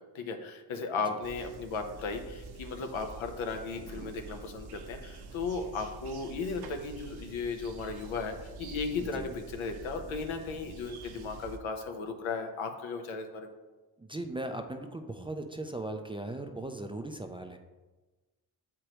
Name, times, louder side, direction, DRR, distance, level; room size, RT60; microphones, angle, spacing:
voice 1, 0.0-13.5, left 4 dB, 75° left, 5 dB, 0.9 m, -36 dB
sound 1, 1.2-11.6, right 3 dB, 55° right, 0.8 m, -46 dB
voice 2, 14.0-17.6, right 2 dB, 10° right, 5 dB, 0.4 m, -38 dB
7.5 x 4.8 x 3.0 m, 1.2 s
cardioid pair, 70°, 47 cm